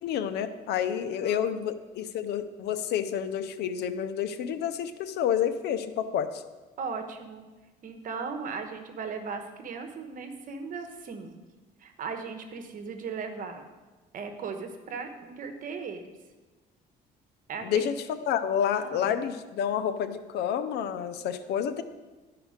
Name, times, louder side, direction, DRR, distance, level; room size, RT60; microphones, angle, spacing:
voice 1, 0.0-6.4 17.6-21.8, left 9 dB, 80° left, 11 dB, 0.7 m, -29 dB
voice 2, 1.0-1.5 6.8-7.4 7.8-11.4 11.8-13.7 14.1-16.1 17.5-17.9 18.7-19.2, right 5 dB, 55° right, 6 dB, 1.1 m, -37 dB
12.0 x 4.9 x 5.0 m, 1.2 s
cardioid pair, 110°, 17 cm